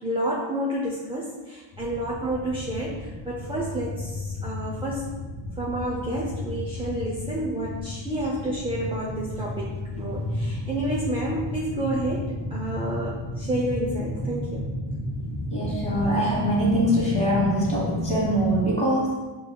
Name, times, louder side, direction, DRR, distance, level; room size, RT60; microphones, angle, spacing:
voice 1, 0.0-5.1 5.6-14.7, right 1 dB, 10° right, -5 dB, 0.5 m, -30 dB
sound 1, 1.7-18.6, left 1 dB, 55° left, 0.8 m, -32 dB
voice 2, 15.5-19.2, right 1 dB, 15° left, -5 dB, 1.3 m, -23 dB
5.3 x 2.4 x 2.2 m, 1.2 s
wide cardioid pair, 100°, 46 cm